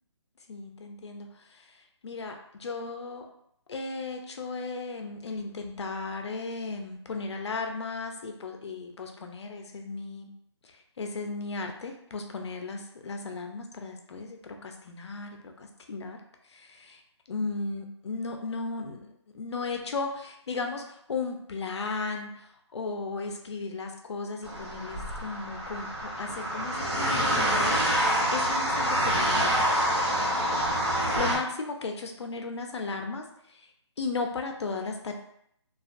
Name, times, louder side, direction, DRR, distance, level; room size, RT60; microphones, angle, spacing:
voice 1, 0.5-1.7 2.0-3.3 3.7-10.3 11.0-16.2 16.5-17.0 17.3-27.8 28.3-29.8 30.1-33.7 34.0-35.1, left 3 dB, 70° left, 4 dB, 0.5 m, -36 dB
sound 1, 24.4-31.4, equal, 60° right, 1.1 m, -26 dB
2.5 x 2.3 x 2.4 m, 0.72 s
hypercardioid pair, 170°, 15 cm